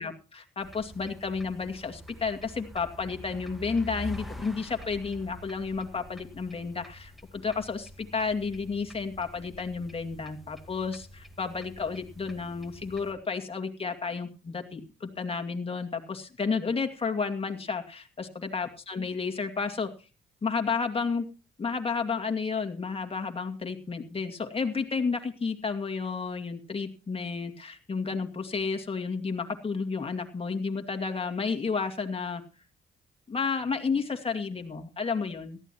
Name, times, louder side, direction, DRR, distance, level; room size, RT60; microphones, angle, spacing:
voice 1, 0.0-19.9 20.4-21.2 21.6-32.4 33.3-35.7, left 5 dB, 30° left, 5 dB, 2.3 m, -31 dB
sound 1, 0.6-13.1, equal, ahead, 2.0 m, -46 dB
18.0 x 14.0 x 3.0 m, 0.33 s
cardioid pair, 90°, 20 cm